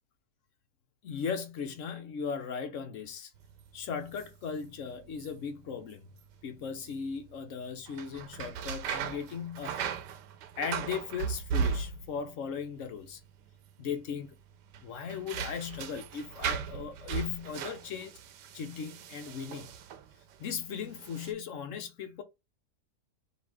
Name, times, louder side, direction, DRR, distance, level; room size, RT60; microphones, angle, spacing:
voice 1, 1.0-3.3 3.7-6.1 6.4-10.0 10.6-13.2 13.8-14.4 14.8-18.1 18.5-19.7 20.4-22.2, left 6 dB, 55° left, 1.0 m, -37 dB
sound 1, 3.4-20.4 20.9-21.3, right 7 dB, 90° right, 1.3 m, -38 dB
4.0 x 2.8 x 4.7 m
omnidirectional pair, 1.8 m